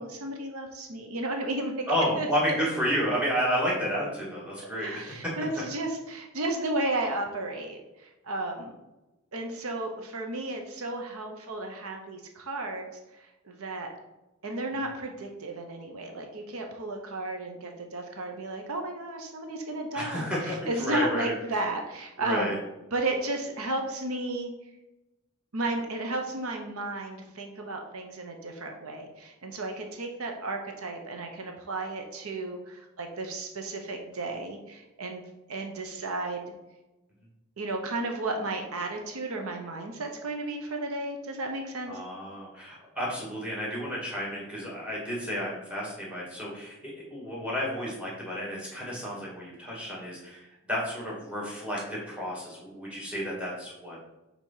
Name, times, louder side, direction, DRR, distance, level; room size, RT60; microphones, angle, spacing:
voice 1, 0.0-1.9 2.2-2.6 4.7-8.7 9.3-13.9 14.4-22.6 22.9-24.5 25.5-35.2 35.5-36.5 37.6-42.0, right 2 dB, 80° right, 3 dB, 0.9 m, -33 dB
voice 2, 1.9-5.0 19.9-21.3 22.2-22.6 41.9-54.0, equal, 5° right, -5 dB, 1.8 m, -31 dB
4.6 x 4.0 x 5.6 m, 0.99 s
head